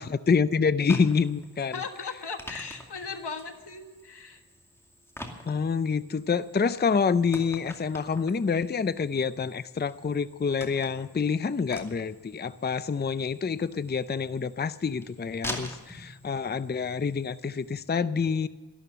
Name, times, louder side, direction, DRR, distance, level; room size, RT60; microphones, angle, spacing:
voice 1, 0.0-1.7 5.5-18.5, left 5 dB, 25° left, 14 dB, 0.5 m, -27 dB
sound 1, 0.8-17.7, equal, 5° left, 2.4 m, -46 dB
voice 2, 1.7-4.4, left 5 dB, 85° left, 6 dB, 1.5 m, -37 dB
12.5 x 12.5 x 7.4 m, 1.3 s
wide cardioid pair, 65°, 39 cm